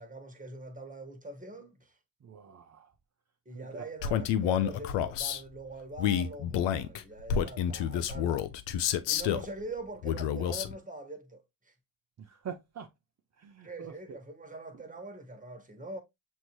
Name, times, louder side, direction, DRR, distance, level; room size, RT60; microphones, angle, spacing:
voice 1, 0.0-2.0 3.4-8.5 9.1-11.7 13.6-16.0, right 2 dB, 15° right, 1.4 m, -43 dB
voice 2, 2.2-2.9 3.5-3.9 12.2-12.9 13.4-14.2, right 7 dB, 35° right, 0.7 m, -45 dB
Male speech man speaking, 4.0-5.4 6.0-9.5 10.0-10.7, left 9 dB, 70° left, 0.7 m, -29 dB
6.2 x 2.8 x 3.0 m
supercardioid pair, 65°, 45 cm